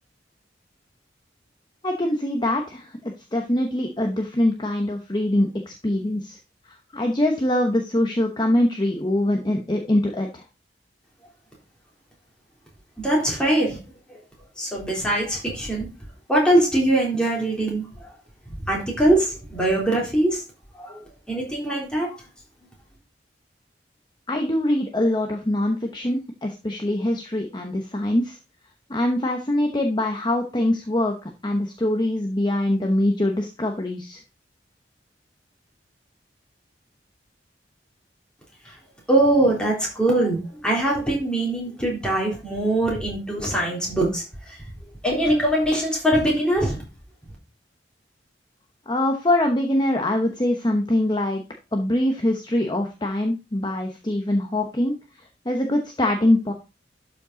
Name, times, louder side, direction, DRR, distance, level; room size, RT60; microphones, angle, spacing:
voice 1, 1.8-6.4 6.6-10.4 24.3-28.4 28.9-34.2 48.9-51.4 51.7-54.9 55.4-56.5, left 1 dB, 25° left, 3 dB, 0.9 m, -23 dB
voice 2, 13.0-13.8 14.6-15.9 16.3-17.8 18.7-20.4 20.8-21.0 21.3-22.2 39.1-44.2 45.0-46.8, right 1 dB, 5° left, -3 dB, 3.5 m, -22 dB
12.0 x 5.3 x 3.9 m, 0.29 s
head